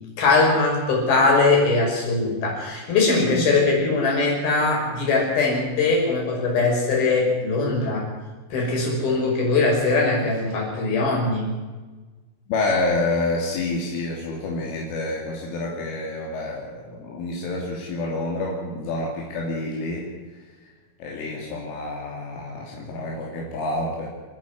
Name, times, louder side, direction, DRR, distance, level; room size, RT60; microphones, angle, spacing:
voice 1, 0.2-8.1 8.5-11.5, left 3 dB, 50° left, -2 dB, 7.6 m, -21 dB
voice 2, 12.5-20.1 21.0-24.1, left 2 dB, 75° left, -2 dB, 5.5 m, -28 dB
30.0 x 10.0 x 9.7 m, 1.3 s
omnidirectional pair, 5.7 m